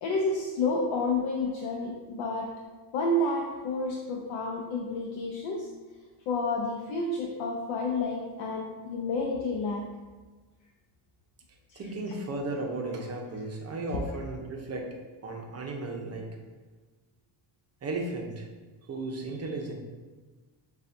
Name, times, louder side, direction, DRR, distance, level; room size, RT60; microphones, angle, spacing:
voice 1, 0.0-2.5 2.9-5.7 6.3-9.9 11.7-11.8, left 2 dB, 70° left, -1 dB, 0.7 m, -30 dB
voice 2, 11.8-14.9 15.2-16.3 17.8-18.5 18.8-19.7, right 2 dB, 30° right, 1 dB, 0.7 m, -35 dB
6.7 x 2.4 x 2.6 m, 1.3 s
cardioid pair, 120°, 49 cm